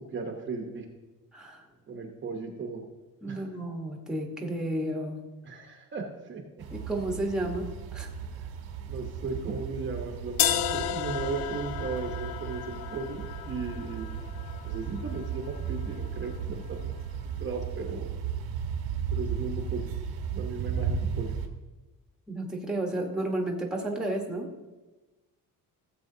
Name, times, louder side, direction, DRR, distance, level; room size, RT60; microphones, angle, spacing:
voice 1, 0.1-0.9 1.9-2.8 3.3-3.4 5.4-6.6 8.4-8.5 8.9-14.1 14.6-16.9 17.4-18.2 19.1-19.9 20.3-21.3, right 4 dB, 30° right, 2 dB, 1.0 m, -36 dB
voice 2, 1.3-1.7 3.2-5.3 6.7-8.1 22.3-24.5, right 1 dB, ahead, 1 dB, 1.1 m, -32 dB
sound 1, 6.6-21.5, right 7 dB, 90° right, 1.3 m, -35 dB
sound 2, 10.4-16.3, left 10 dB, 75° left, 0.6 m, -33 dB
16.0 x 7.6 x 2.7 m, 1.2 s
cardioid pair, 155°, 37 cm